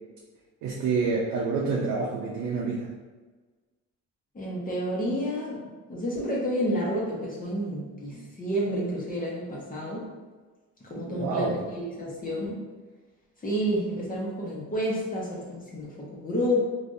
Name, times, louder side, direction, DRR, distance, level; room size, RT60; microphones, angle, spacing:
voice 1, 0.6-2.9 11.1-11.6, right 4 dB, 90° right, -3 dB, 0.6 m, -28 dB
voice 2, 4.3-5.6 5.9-10.0 10.9-12.6 13.4-16.6, equal, 30° left, -5 dB, 0.9 m, -30 dB
3.4 x 2.5 x 2.6 m, 1.3 s
cardioid pair, 90°, 30 cm